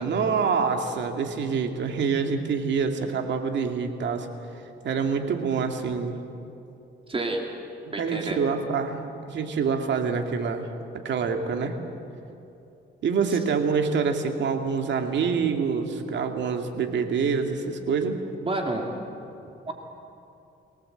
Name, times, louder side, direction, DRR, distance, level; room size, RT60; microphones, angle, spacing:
voice 1, 0.0-4.3 4.8-6.2 8.0-10.7 11.0-11.8 13.0-18.2, right 5 dB, 65° right, 5 dB, 2.4 m, -26 dB
voice 2, 7.1-7.4 7.9-8.4 13.3-13.4 18.4-18.9 19.7-19.8, right 2 dB, 30° right, 2 dB, 2.9 m, -29 dB
23.0 x 18.0 x 8.0 m, 2.7 s
cardioid pair, 90°, 20 cm